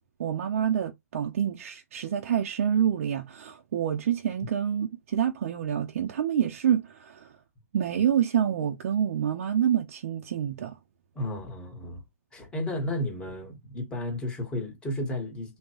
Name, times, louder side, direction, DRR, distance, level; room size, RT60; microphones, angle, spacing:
voice 1, 0.2-7.3 7.7-10.8, right 9 dB, 55° right, 0.6 m, -27 dB
voice 2, 11.1-12.0 12.3-15.6, left 1 dB, 10° left, 1.2 m, -33 dB
3.7 x 2.2 x 2.9 m
hypercardioid pair, 125°, 9 cm